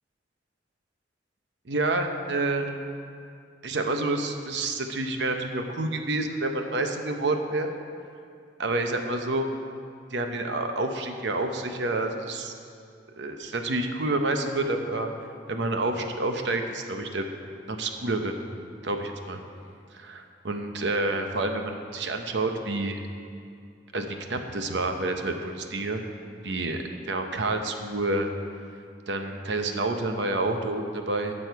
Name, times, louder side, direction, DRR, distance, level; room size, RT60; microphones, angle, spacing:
voice 1, 1.7-2.7 3.6-7.7 8.6-9.5 10.1-12.5 13.2-15.1 15.5-17.3 17.7-18.3 18.8-19.4 19.9-23.0 23.9-26.0 26.4-26.8 27.1-28.3 29.1-31.3, right 2 dB, 65° right, 5 dB, 0.8 m, -28 dB
15.5 x 6.4 x 4.7 m, 2.4 s
head